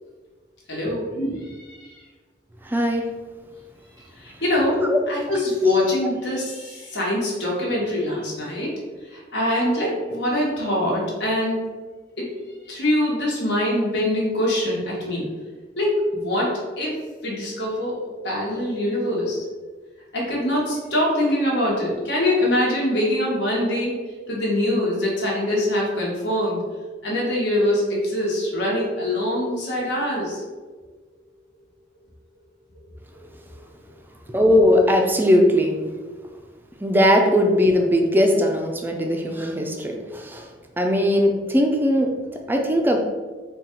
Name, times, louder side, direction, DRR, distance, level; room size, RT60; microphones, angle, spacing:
voice 1, 0.7-1.9 4.2-8.8 9.1-11.6 12.2-12.3 12.7-15.3 15.8-17.0 17.2-18.0 18.2-19.4 20.1-24.0 24.3-26.6 27.0-30.4, left 1 dB, 80° left, -4 dB, 1.2 m, -24 dB
voice 2, 2.6-3.0 4.8-5.1 5.6-5.8 34.3-35.8 36.8-40.5 40.8-42.1 42.5-43.0, left 1 dB, 10° right, 2 dB, 0.4 m, -19 dB
3.8 x 2.4 x 4.3 m, 1.4 s
head